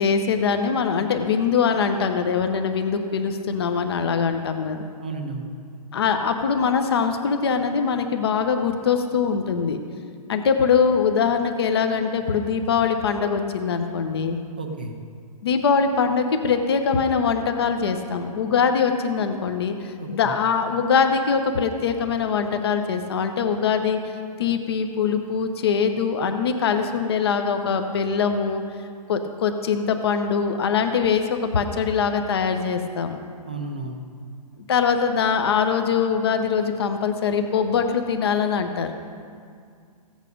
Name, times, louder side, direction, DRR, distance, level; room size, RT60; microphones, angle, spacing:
voice 1, 0.0-4.8 5.9-9.8 10.3-14.4 15.4-24.0 24.4-28.6 29.1-31.2 31.5-33.2 34.7-38.9, left 6 dB, 40° left, 6 dB, 0.8 m, -22 dB
voice 2, 5.0-5.5 14.6-14.9 20.0-20.3 33.5-34.0, right 3 dB, 15° right, 4 dB, 0.3 m, -32 dB
15.5 x 8.2 x 5.2 m, 2.2 s
hypercardioid pair, 175°, 21 cm